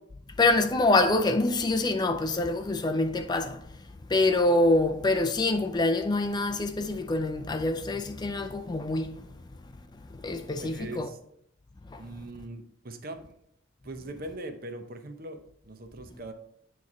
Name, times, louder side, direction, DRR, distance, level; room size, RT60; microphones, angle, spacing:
voice 1, 0.4-3.6 4.1-9.2 10.2-11.1 11.9-12.0, left 2 dB, 20° left, 0.4 m, -25 dB
voice 2, 10.6-11.2 12.0-13.3 13.8-16.3, right 2 dB, 50° right, 0.7 m, -41 dB
9.4 x 3.2 x 4.2 m
head